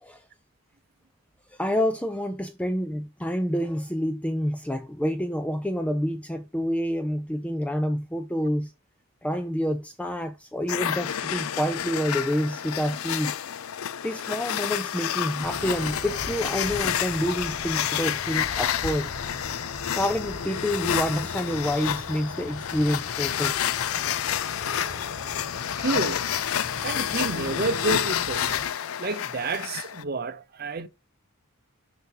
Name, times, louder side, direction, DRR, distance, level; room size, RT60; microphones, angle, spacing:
voice 1, 1.5-8.7 9.2-13.4 14.0-19.1 19.9-23.6, equal, 5° left, 0.4 m, -28 dB
sound 1, 10.7-30.0, left 10 dB, 80° left, 0.4 m, -29 dB
sound 2, 15.4-28.7, left 1 dB, 65° left, 2.1 m, -40 dB
voice 2, 25.8-26.3 26.8-28.7 29.0-30.9, right 3 dB, 45° right, 0.8 m, -29 dB
6.3 x 6.0 x 4.8 m
head